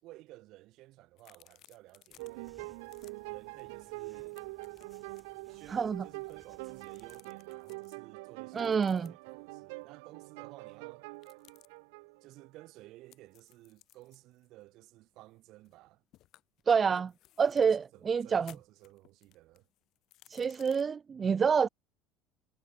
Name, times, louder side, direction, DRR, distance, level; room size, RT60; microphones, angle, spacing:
voice 1, 0.0-2.6 3.3-4.4 5.5-11.1 12.2-16.0 16.9-17.1 17.6-19.7, right 18 dB, 65° right, 5.0 m, -55 dB
sound 1, 1.2-2.5 2.8-3.1 3.6-3.7 4.0-5.3 6.1-8.0 8.5-9.3 11.1-11.7 13.1-15.8 16.1-17.8 18.2-20.8, left 14 dB, 60° left, 5.7 m, -61 dB
sound 2, 2.1-7.2, right 2 dB, 10° right, 4.7 m, -64 dB
sound 3, 2.2-12.7, right 27 dB, 85° right, 1.2 m, -45 dB
voice 2, 5.7-6.0 8.5-9.1 16.7-17.1 17.4-18.5 20.3-21.7, right 6 dB, 30° right, 0.4 m, -27 dB
supercardioid pair, 100°, 0 cm